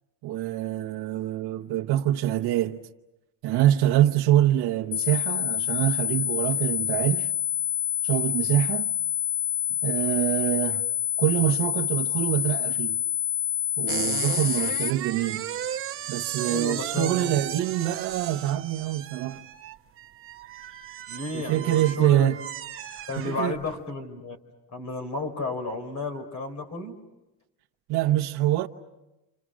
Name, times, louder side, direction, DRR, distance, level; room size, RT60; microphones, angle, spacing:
voice 1, 0.2-2.8 3.4-7.3 8.0-8.9 9.8-10.8 11.2-13.0 13.8-15.5 16.1-19.4 21.3-22.4 23.2-23.5 27.9-28.7, right 13 dB, 60° right, 1.0 m, -25 dB
sound 1, 4.9-14.9, left 10 dB, 80° left, 1.0 m, -27 dB
sound 2, 13.9-23.8, right 11 dB, 30° right, 0.8 m, -36 dB
voice 2, 16.5-17.4 21.1-22.3 23.1-24.4 24.7-27.0, left 3 dB, 40° left, 3.9 m, -32 dB
29.0 x 27.5 x 6.2 m
cardioid pair, 175°, 42 cm